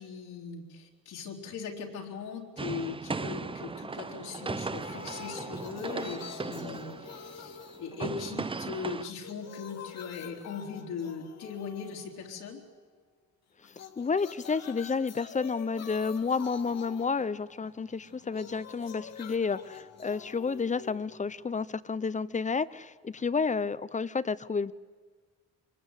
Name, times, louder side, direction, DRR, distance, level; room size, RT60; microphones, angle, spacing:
voice 1, 0.0-12.6, left 5 dB, 85° left, 0 dB, 3.6 m, -39 dB
sound 1, 2.6-9.0, right 4 dB, 20° right, 0.6 m, -37 dB
sound 2, 4.6-8.6 8.9-12.7 13.6-21.6, left 6 dB, 60° left, 1.9 m, -47 dB
voice 2, 14.0-24.7, left 5 dB, 25° left, 17 dB, 0.7 m, -31 dB
23.5 x 21.0 x 8.2 m, 1.5 s
cardioid pair, 90°, 30 cm